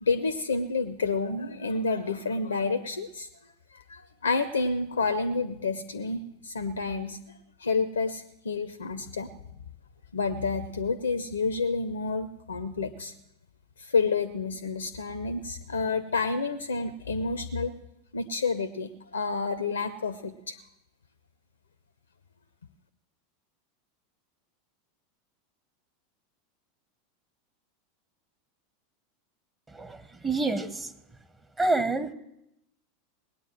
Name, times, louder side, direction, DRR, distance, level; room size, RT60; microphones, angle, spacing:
voice 1, 0.0-3.3 3.7-7.2 7.6-9.3 10.1-13.1 13.8-17.7 18.1-20.6, left 4 dB, 80° left, 12 dB, 0.6 m, -29 dB
voice 2, 30.2-30.9 31.6-32.1, right 2 dB, 15° right, 11 dB, 1.0 m, -27 dB
19.0 x 9.2 x 7.6 m, 0.84 s
figure-of-eight pair, 85°, 0 cm